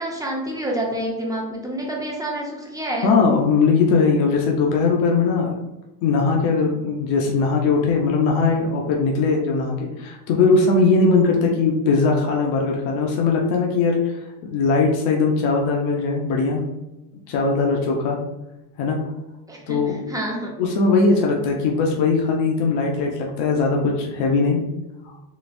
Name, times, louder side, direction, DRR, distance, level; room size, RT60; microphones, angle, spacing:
voice 1, 0.0-3.1 19.5-20.5, right 1 dB, 10° right, -1 dB, 0.5 m, -28 dB
voice 2, 3.0-5.5 6.0-14.2 14.4-16.6 17.3-18.2 18.8-19.0 19.7-20.0 20.6-24.7, left 4 dB, 65° left, 0 dB, 0.7 m, -20 dB
3.9 x 2.4 x 2.5 m, 1.0 s
supercardioid pair, 120°, 46 cm